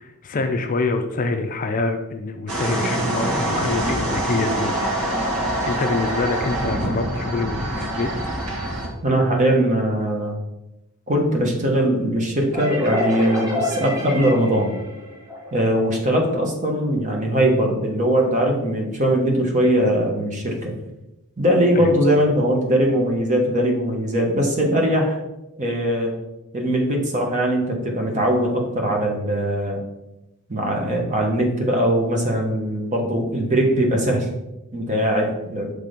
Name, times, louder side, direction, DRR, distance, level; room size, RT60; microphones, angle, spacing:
voice 1, 0.0-4.8 5.6-8.3 21.7-21.9, left 3 dB, 40° left, 6 dB, 0.4 m, -25 dB
sound 1, 2.5-8.9, right 1 dB, 80° right, 1.6 m, -25 dB
voice 2, 9.0-10.4 11.1-14.7 15.5-20.7 21.4-25.2 25.6-26.1 26.5-29.8 30.5-34.3 34.7-35.7, right 1 dB, 35° right, 1 dB, 1.1 m, -20 dB
sound 2, 12.5-16.0, left 1 dB, 15° right, 1.6 m, -28 dB
5.9 x 3.3 x 5.0 m, 0.94 s
head